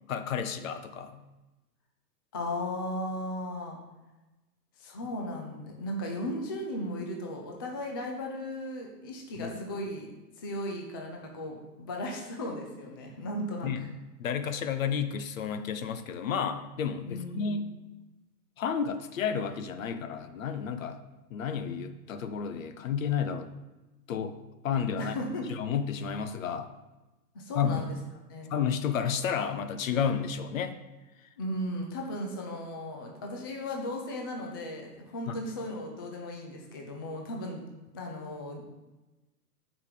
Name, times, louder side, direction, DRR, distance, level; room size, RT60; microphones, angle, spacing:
voice 1, 0.1-1.2 9.4-9.6 13.6-13.8 14.2-17.7 18.6-21.0 21.3-23.5 24.1-24.4 24.6-25.1 25.5-26.7 27.5-27.7 28.5-30.7 35.3-35.4, left 7 dB, 55° left, 9 dB, 0.9 m, -31 dB
voice 2, 2.3-3.8 4.8-10.1 10.4-13.9 17.1-17.6 25.0-25.5 27.3-27.9 28.3-28.5 31.4-37.6 37.9-38.6, left 1 dB, 15° left, 1 dB, 0.4 m, -36 dB
6.7 x 5.0 x 6.6 m, 1.1 s
figure-of-eight pair, 120°, 48 cm